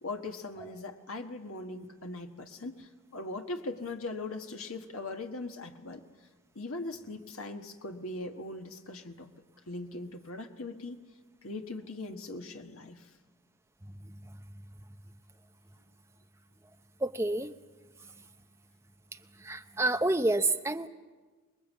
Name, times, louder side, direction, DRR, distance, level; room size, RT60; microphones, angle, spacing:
voice 1, 0.0-6.0 6.5-9.3 9.7-11.0 11.4-13.1, left 2 dB, 70° left, 5 dB, 1.4 m, -40 dB
voice 2, 17.0-17.5 19.4-20.9, right 2 dB, 10° right, 7 dB, 0.7 m, -28 dB
25.0 x 21.0 x 8.3 m, 1.3 s
head